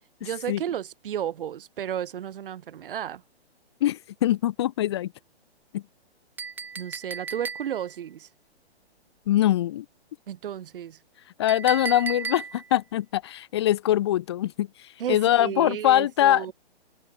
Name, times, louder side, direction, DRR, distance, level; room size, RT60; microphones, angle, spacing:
voice 1, 0.2-3.2 6.8-8.3 10.3-11.0 15.0-16.5, right 10 dB, 55° right, 2.5 m, -33 dB
voice 2, 3.8-5.1 5.7-5.8 9.3-9.9 11.4-14.7 15.1-16.5, left 13 dB, 25° left, 0.5 m, -23 dB
Chink clink, 6.4-8.0 11.5-12.8, right 5 dB, 5° right, 0.9 m, -35 dB
hypercardioid pair, 145°, 33 cm